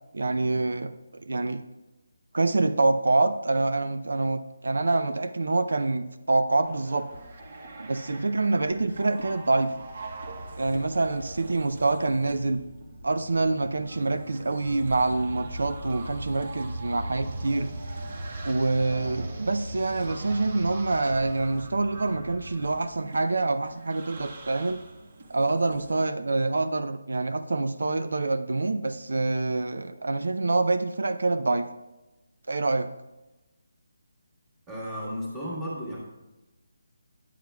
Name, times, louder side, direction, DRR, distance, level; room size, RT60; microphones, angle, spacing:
voice 1, 0.1-1.6 2.3-7.1 7.8-9.7 10.6-12.6 13.0-17.7 18.4-24.8 25.3-31.7 32.5-32.9, right 3 dB, 80° right, 10 dB, 0.4 m, -26 dB
sound 1, 6.6-25.9, right 2 dB, 35° right, 0.8 m, -40 dB
voice 2, 34.7-36.0, equal, 5° right, -7 dB, 1.5 m, -34 dB
9.2 x 8.6 x 2.3 m, 1.0 s
hypercardioid pair, 175°, 0 cm